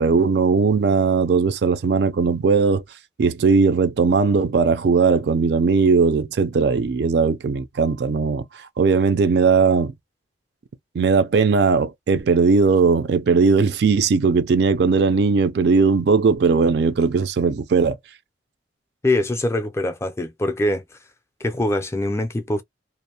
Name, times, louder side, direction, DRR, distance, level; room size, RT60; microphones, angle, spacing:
voice 1, 0.0-2.8 3.2-8.5 8.8-9.9 11.0-18.0, right 5 dB, 60° right, 0.4 m, -18 dB
voice 2, 19.0-20.8 21.4-22.6, left 1 dB, 15° left, 0.3 m, -23 dB
2.5 x 2.0 x 2.7 m
head